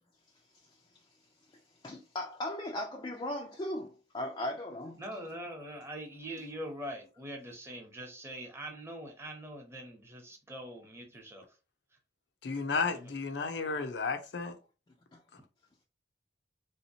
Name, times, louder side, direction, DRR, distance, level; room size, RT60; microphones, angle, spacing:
voice 1, 1.8-5.0 15.1-15.2, left 1 dB, 25° left, 0.4 m, -37 dB
voice 2, 5.0-11.6 12.9-13.1, right 1 dB, 15° right, 0.9 m, -43 dB
voice 3, 12.4-14.6, left 4 dB, 75° left, 0.5 m, -33 dB
3.3 x 2.8 x 2.8 m
head